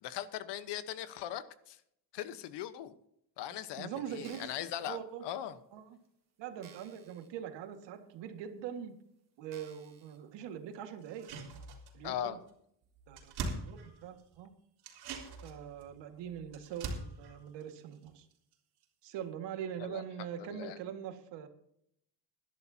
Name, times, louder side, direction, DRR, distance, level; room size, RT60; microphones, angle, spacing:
voice 1, 0.0-1.8 2.1-2.9 3.4-5.6 12.0-12.4 13.4-13.6 19.8-20.0 20.4-20.8, left 11 dB, 75° left, 13 dB, 1.2 m, -40 dB
voice 2, 3.8-4.4 4.9-5.2 5.7-6.0 6.4-9.0 9.4-11.3 11.9-12.4 13.1-14.5 15.4-18.3 19.0-21.5, right 9 dB, 80° right, 7 dB, 2.0 m, -43 dB
sound 1, 4.1-4.8 5.5-5.6 6.1-6.2 6.6-7.3 7.7-7.8 8.6-8.7 9.5-10.2 10.7-10.8, right 7 dB, 40° right, 3.0 m, -58 dB
sound 2, 11.0-12.2 12.5-12.6 12.8-14.4 14.8-18.5 18.8-18.9, right 3 dB, 65° right, 3.6 m, -43 dB
20.5 x 11.5 x 2.9 m, 0.73 s
cardioid pair, 160°, 42 cm